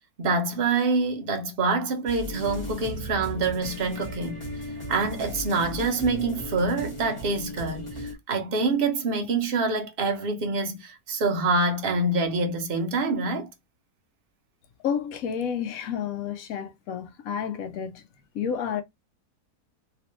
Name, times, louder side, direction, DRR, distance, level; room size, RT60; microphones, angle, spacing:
voice 1, 0.2-4.4 4.9-13.5, right 3 dB, 50° right, 0.7 m, -26 dB
sound 1, 2.1-8.1, equal, 20° left, 1.3 m, -36 dB
voice 2, 14.8-18.0 18.3-18.8, left 7 dB, 65° left, 1.0 m, -30 dB
3.2 x 2.9 x 3.0 m
omnidirectional pair, 1.7 m